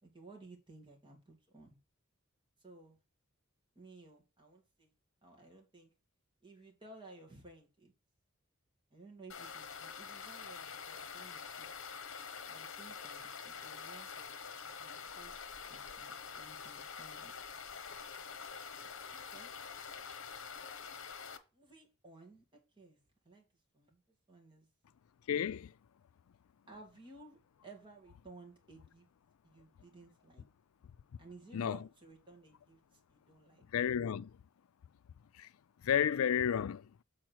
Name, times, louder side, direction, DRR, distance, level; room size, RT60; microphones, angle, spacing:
voice 1, 0.0-1.8 2.6-3.0 3.7-4.9 5.2-5.9 6.4-7.9 8.9-11.7 12.5-14.4 14.8-17.3 19.1-19.6 21.5-23.0 23.2-23.5 23.7-24.0 24.3-24.7 26.7-29.1 29.4-30.5 31.2-33.7, right 3 dB, 25° right, 2.4 m, -57 dB
sound 1, 9.3-21.4, left 6 dB, 65° left, 1.0 m, -46 dB
voice 2, 25.3-25.7 31.5-31.8 33.7-34.3 35.4-35.5 35.8-36.9, left 8 dB, 85° left, 0.4 m, -31 dB
7.5 x 4.3 x 4.6 m
head